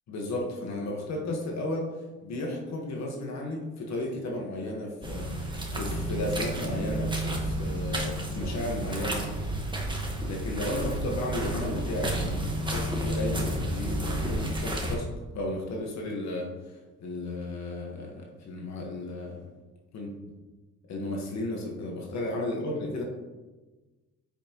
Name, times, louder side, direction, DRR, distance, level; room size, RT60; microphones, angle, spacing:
voice 1, 0.1-1.9 2.2-9.3 10.2-15.1 15.3-19.4 19.9-20.1 20.9-23.0, left 1 dB, 65° left, -1 dB, 1.6 m, -34 dB
sound 1, 5.0-14.9, right 1 dB, 15° right, 1.5 m, -31 dB
8.9 x 5.6 x 3.1 m, 1.2 s
cardioid pair, 90°, 30 cm